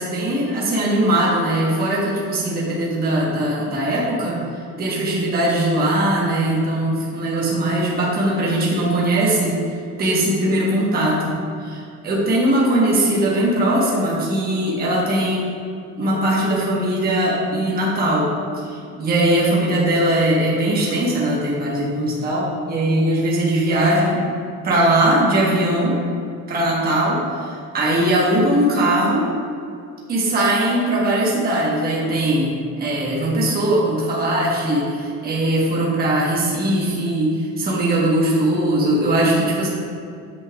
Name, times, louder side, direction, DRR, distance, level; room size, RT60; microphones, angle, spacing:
voice 1, 0.0-4.4 4.8-9.6 10.0-15.4 16.0-18.3 18.5-24.2 24.6-26.0 26.5-29.3 30.1-39.7, right 1 dB, 25° right, -5 dB, 1.3 m, -20 dB
8.6 x 5.6 x 2.4 m, 2.3 s
cardioid pair, 165°, 35 cm